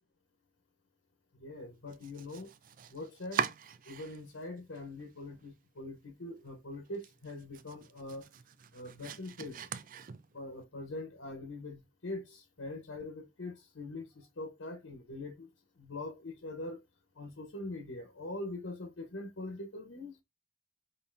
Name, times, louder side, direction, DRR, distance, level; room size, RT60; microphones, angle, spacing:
voice 1, 1.4-2.5 2.9-3.5 3.9-8.3 8.7-9.6 10.3-15.5 15.8-16.8 17.2-20.1, left 2 dB, 85° left, 1.1 m, -43 dB
Domestic sounds home sounds, 1.9-4.4 4.7-5.5 5.9-6.0 6.4-6.5 6.9-10.5, right 8 dB, 45° right, 0.4 m, -41 dB
5.4 x 2.7 x 2.6 m
head